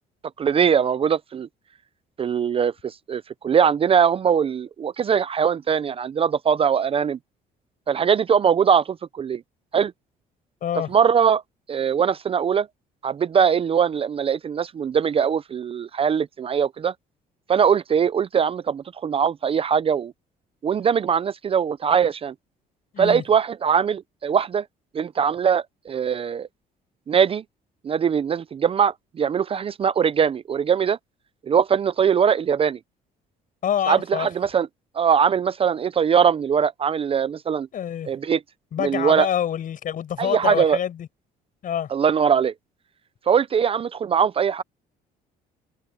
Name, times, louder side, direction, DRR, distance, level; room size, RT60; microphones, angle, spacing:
voice 1, 0.4-1.5 2.2-7.2 7.9-9.4 9.7-9.9 10.9-11.4 11.7-12.7 13.0-16.9 17.5-20.1 20.6-22.3 23.0-24.6 24.9-26.5 27.1-27.4 27.8-31.0 31.5-32.8 33.9-34.7 35.0-37.7 38.1-38.4 38.8-39.3 40.2-40.8 41.9-42.5 43.3-44.6, right 7 dB, 35° right, 0.5 m, -21 dB
voice 2, 10.6-10.9 22.9-23.2 33.6-34.3 37.7-38.1 38.7-41.1 41.6-41.9, left 9 dB, 55° left, 7.9 m, -26 dB
cardioid pair, 110°, 17 cm